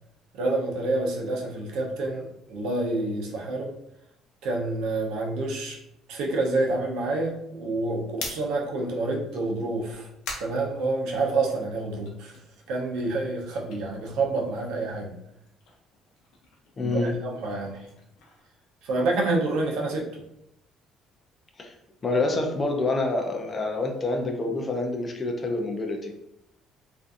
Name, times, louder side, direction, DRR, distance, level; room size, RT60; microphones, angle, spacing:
voice 1, 0.3-3.7 4.4-5.8 6.1-10.1 10.4-12.4 12.7-15.1 16.8-17.9 18.8-20.1, right 2 dB, 80° right, -1 dB, 0.6 m, -28 dB
sound 1, 8.1-11.5 11.9-14.9 15.1-19.3, left 3 dB, 80° left, 0.7 m, -44 dB
voice 2, 16.8-17.2 21.6-21.7 22.0-26.1, left 2 dB, 25° left, 2 dB, 0.4 m, -27 dB
2.5 x 2.4 x 2.4 m, 0.80 s
cardioid pair, 160°, 0 cm